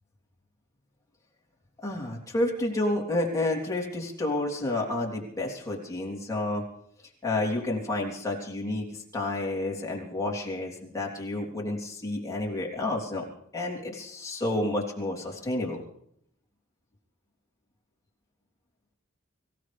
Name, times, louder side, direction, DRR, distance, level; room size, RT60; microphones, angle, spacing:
voice 1, 1.8-6.6 7.2-8.8 9.1-13.2 13.5-15.8, left 2 dB, 15° left, -2 dB, 3.3 m, -30 dB
25.0 x 15.5 x 3.4 m, 0.70 s
head